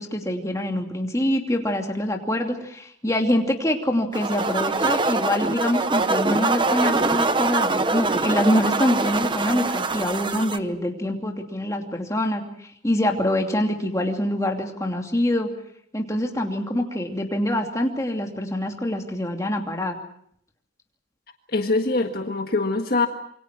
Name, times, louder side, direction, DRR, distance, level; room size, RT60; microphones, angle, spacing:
voice 1, 0.0-15.5 15.9-20.0, left 1 dB, 15° left, 2 dB, 2.7 m, -25 dB
sound 1, 4.1-10.6, right 3 dB, 25° right, 0.9 m, -24 dB
voice 2, 21.5-23.1, left 3 dB, 50° left, 4 dB, 1.7 m, -23 dB
27.5 x 24.0 x 6.1 m, 0.69 s
head